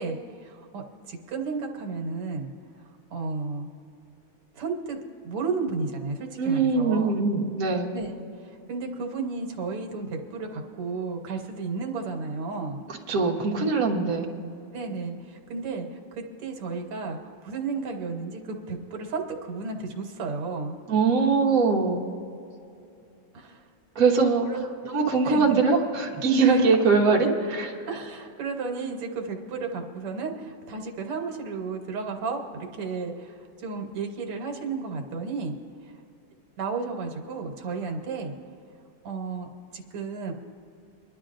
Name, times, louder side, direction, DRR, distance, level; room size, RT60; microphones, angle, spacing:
voice 1, 0.0-3.7 4.5-5.0 5.2-7.2 7.9-8.1 8.4-12.8 14.7-20.8 23.3-23.7 24.5-24.6 25.2-25.6 26.4-26.7 27.9-35.6 35.8-35.9 36.6-38.3 39.0-39.5 39.7-40.3, right 4 dB, 90° right, 3 dB, 2.1 m, -33 dB
voice 2, 6.4-7.9 13.1-14.2 20.9-22.0 23.9-24.5 24.9-27.7, right 4 dB, 45° right, -1 dB, 1.5 m, -22 dB
25.5 x 11.0 x 2.5 m, 2.5 s
omnidirectional pair, 2.4 m